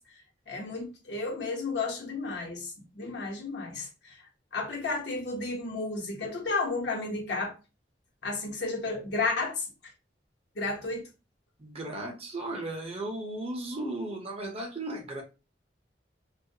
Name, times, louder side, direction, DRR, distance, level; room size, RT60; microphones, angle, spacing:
voice 1, 0.5-4.2 4.5-7.5 8.2-9.7 10.5-11.0, left 3 dB, 70° left, 0.9 m, -32 dB
voice 2, 11.6-15.2, right 2 dB, 35° right, 0.6 m, -35 dB
2.3 x 2.1 x 2.7 m
head